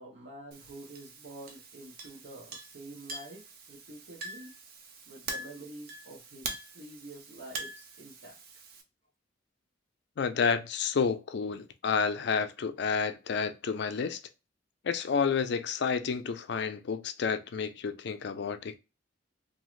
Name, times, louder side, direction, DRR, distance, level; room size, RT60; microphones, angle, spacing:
voice 1, 0.0-3.4 3.7-4.5 5.1-8.4, right 1 dB, 70° right, 1.0 m, -48 dB
Chink clink, 0.5-8.8, right 3 dB, 55° right, 0.6 m, -44 dB
voice 2, 10.2-14.2 14.8-18.8, left 6 dB, 60° left, 0.4 m, -30 dB
2.7 x 2.5 x 3.0 m
head